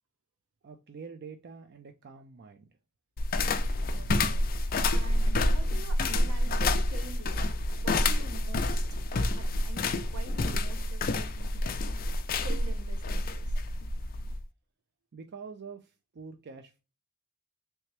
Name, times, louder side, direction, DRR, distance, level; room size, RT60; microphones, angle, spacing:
voice 1, 0.6-2.7 15.1-16.8, right 5 dB, 50° right, 0.4 m, -46 dB
sound 1, 3.2-14.4, left 2 dB, 40° left, 0.4 m, -28 dB
voice 2, 3.9-4.5 4.9-7.5 7.7-11.8 12.4-13.6, right 4 dB, 75° right, 0.8 m, -46 dB
3.4 x 2.9 x 3.2 m
head